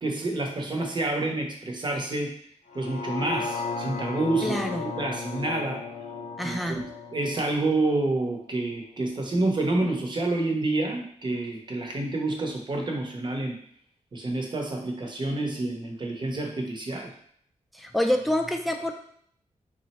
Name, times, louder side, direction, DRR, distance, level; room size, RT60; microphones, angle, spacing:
voice 1, 0.0-2.3 2.7-5.8 6.4-13.6 14.1-17.1, right 2 dB, 35° right, 2 dB, 0.7 m, -28 dB
sound 1, 2.7-8.8 9.3-9.4, left 4 dB, 70° left, 0.4 m, -35 dB
voice 2, 4.4-4.9 6.4-6.8 17.7-18.9, left 1 dB, ahead, 4 dB, 0.4 m, -27 dB
3.5 x 2.1 x 4.1 m, 0.63 s
wide cardioid pair, 115°, 13 cm